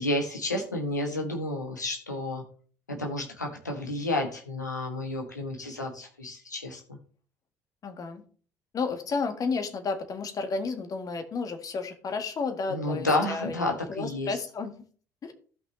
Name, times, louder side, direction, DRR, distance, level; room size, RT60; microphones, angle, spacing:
voice 1, 0.0-2.4 2.9-7.0 12.7-14.3, left 2 dB, 90° left, 2 dB, 1.3 m, -31 dB
voice 2, 7.8-8.2 8.7-13.6 13.9-14.7 15.2-15.3, left 4 dB, 40° left, 6 dB, 1.7 m, -32 dB
15.5 x 5.6 x 3.2 m, 0.43 s
figure-of-eight pair, 50°, 9 cm